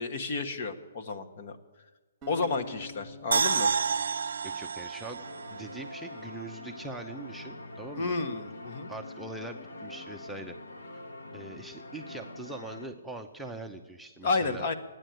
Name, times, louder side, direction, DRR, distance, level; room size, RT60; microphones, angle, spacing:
voice 1, 0.0-1.6 2.3-3.7 8.0-8.9 14.2-14.7, left 3 dB, 50° left, 6 dB, 1.4 m, -31 dB
sound 1, 2.2-5.4, left 2 dB, 20° right, 1.5 m, -48 dB
sound 2, 3.3-6.5 6.8-6.9, right 6 dB, 75° right, 0.4 m, -30 dB
voice 2, 4.4-5.2 5.5-8.2 8.9-11.0 11.3-14.7, right 2 dB, ahead, 0 dB, 0.7 m, -42 dB
sound 3, 5.2-12.9, left 2 dB, 90° left, 1.7 m, -44 dB
14.0 x 10.0 x 9.2 m, 1.2 s
hypercardioid pair, 155°, 0 cm